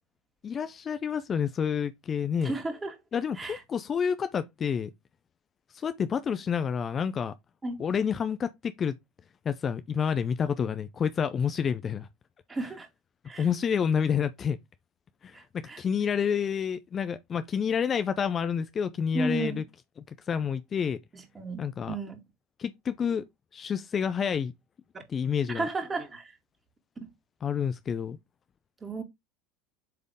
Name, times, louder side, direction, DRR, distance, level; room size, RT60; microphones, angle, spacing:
voice 1, 0.4-2.6 3.1-4.9 5.7-7.3 7.8-8.9 9.4-12.1 13.4-14.6 15.2-19.6 20.1-21.0 21.6-21.9 22.6-23.2 23.5-24.5 25.1-25.7 27.4-28.2, left 7 dB, 35° left, 0.5 m, -29 dB
voice 2, 2.4-3.0 3.4-3.6 7.6-7.8 12.5-12.9 13.3-13.5 15.3-15.8 19.1-19.6 21.1-22.2 25.5-26.3 27.0-27.1 28.8-29.0, right 2 dB, 20° right, 2.4 m, -33 dB
7.7 x 3.5 x 3.6 m
hypercardioid pair, 80°, 0 cm